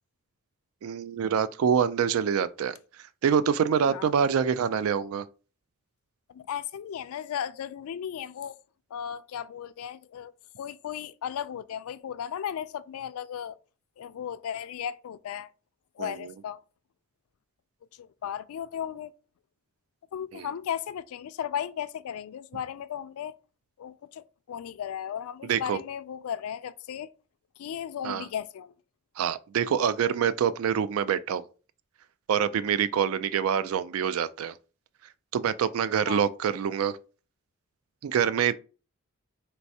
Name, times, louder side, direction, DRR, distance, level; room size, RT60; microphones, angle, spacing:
voice 1, 0.8-2.8 3.2-5.2 16.0-16.3 20.3-20.5 25.4-25.8 28.0-28.3 29.2-31.4 32.3-34.6 35.3-37.0 38.0-38.5, right 7 dB, 80° right, 0.3 m, -26 dB
voice 2, 6.3-8.6 8.9-10.3 10.6-13.6 14.0-15.5 16.0-16.6 18.0-19.1 20.1-23.3 23.8-27.1 27.6-28.7 36.0-36.2, left 9 dB, 85° left, 0.3 m, -35 dB
4.5 x 3.1 x 2.7 m
head